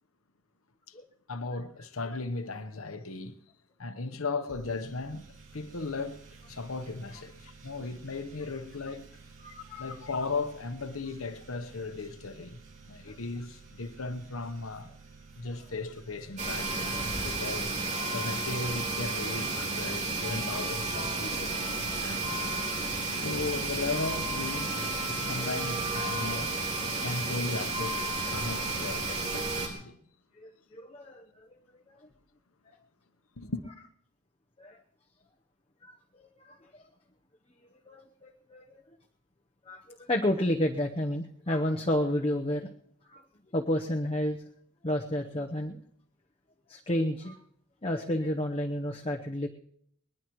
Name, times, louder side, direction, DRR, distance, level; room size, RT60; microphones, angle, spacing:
voice 1, 1.3-3.3 3.8-6.2 6.5-9.1 9.8-12.6 12.9-14.9 15.4-17.8 18.1-22.4 23.1-24.8 25.1-30.0 33.4-33.6, left 3 dB, 80° left, 1.1 m, -37 dB
sound 1, 4.5-17.9, right 4 dB, 75° right, 2.7 m, -53 dB
voice 2, 9.4-10.0 13.1-13.2 30.4-31.5 32.7-32.8 34.6-34.8 35.8-36.9 37.9-38.8 39.7-42.7 43.1-43.2 43.5-44.4 44.8-45.8 46.7-47.4 47.8-49.5, left 1 dB, 25° left, 0.9 m, -31 dB
sound 2, 16.4-29.7, right 3 dB, 35° right, 4.1 m, -32 dB
21.5 x 20.5 x 3.1 m
head